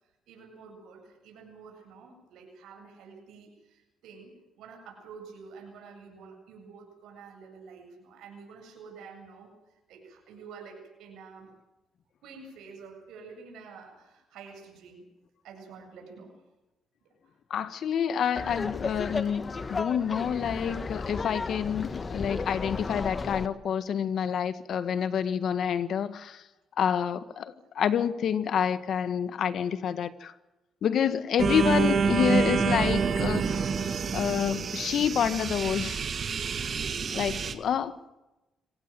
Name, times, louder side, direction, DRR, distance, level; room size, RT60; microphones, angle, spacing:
voice 1, 0.3-11.5 12.2-15.1 15.4-16.4 17.2-17.3 27.6-27.7 37.1-37.5, right 5 dB, 85° right, 1 dB, 8.0 m, -49 dB
voice 2, 17.5-26.4 26.8-30.3 30.8-33.6 34.1-36.0 37.1-38.0, left 8 dB, 65° left, 12 dB, 1.6 m, -28 dB
Laughter, 18.4-23.5, left 4 dB, 30° left, 1.4 m, -34 dB
sound 1, 31.4-37.5, right 5 dB, 50° right, 2.2 m, -27 dB
25.0 x 18.5 x 7.7 m, 1.0 s
cardioid pair, 90°, 0 cm